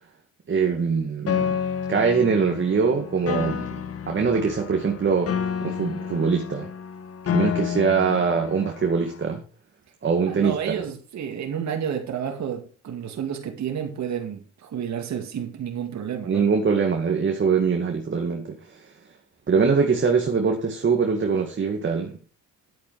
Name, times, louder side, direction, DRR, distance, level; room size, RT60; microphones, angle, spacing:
voice 1, 0.5-1.6 1.9-3.7 4.1-5.3 5.6-6.7 7.3-9.4 10.0-10.7 16.2-18.9 19.5-22.2, right 5 dB, 40° right, 2.0 m, -23 dB
Piano, 1.3-9.3, left 7 dB, 50° left, 1.3 m, -30 dB
voice 2, 10.3-16.4, right 8 dB, 65° right, 2.2 m, -30 dB
10.5 x 8.4 x 4.8 m
cardioid pair, 90°, 30 cm